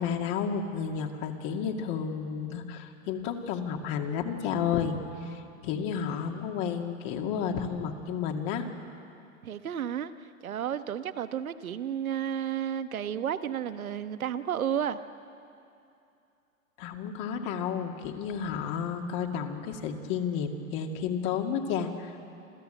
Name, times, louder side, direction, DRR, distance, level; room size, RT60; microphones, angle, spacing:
voice 1, 0.0-8.7 16.8-22.2, left 7 dB, 45° left, 3 dB, 2.3 m, -32 dB
voice 2, 9.4-10.1 10.4-15.0, right 9 dB, 85° right, 11 dB, 1.2 m, -32 dB
27.5 x 14.0 x 9.1 m, 2.6 s
hypercardioid pair, 120°, 41 cm